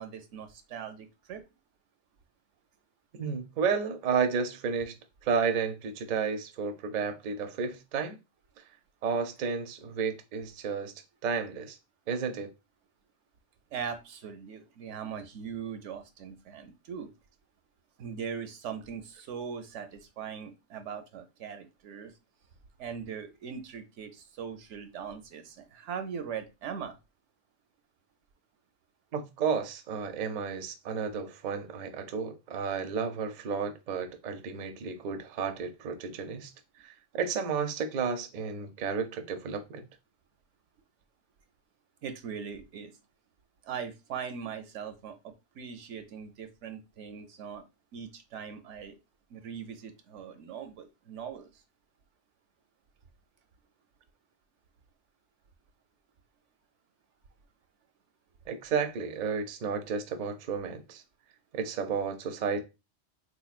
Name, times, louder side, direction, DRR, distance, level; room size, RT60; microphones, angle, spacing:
voice 1, 0.0-1.4 13.7-17.1 18.0-22.1 22.8-26.9 42.0-42.9 43.6-47.6 47.9-48.9 49.3-51.5, right 7 dB, 80° right, 0.9 m, -40 dB
voice 2, 3.2-5.0 5.2-8.2 9.0-10.9 11.2-11.8 12.1-12.5 29.1-36.5 36.8-39.8 58.5-61.0 61.5-62.6, right 6 dB, 55° right, 0.5 m, -32 dB
3.7 x 3.0 x 2.4 m
omnidirectional pair, 1.3 m